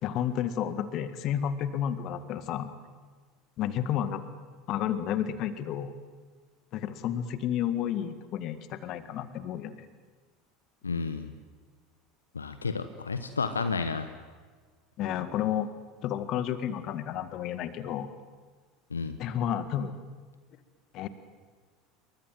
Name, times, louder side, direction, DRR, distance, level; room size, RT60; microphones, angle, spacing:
voice 1, 0.0-2.7 3.6-4.2 4.7-5.9 6.7-9.8 15.0-15.7 16.0-18.1 19.2-20.0 20.9-21.1, left 10 dB, 45° left, 12 dB, 2.0 m, -31 dB
voice 2, 10.8-11.3 12.3-14.1 18.9-19.2, left 4 dB, 80° left, 10 dB, 1.1 m, -31 dB
28.0 x 23.5 x 7.8 m, 1.5 s
figure-of-eight pair, 75°, 0 cm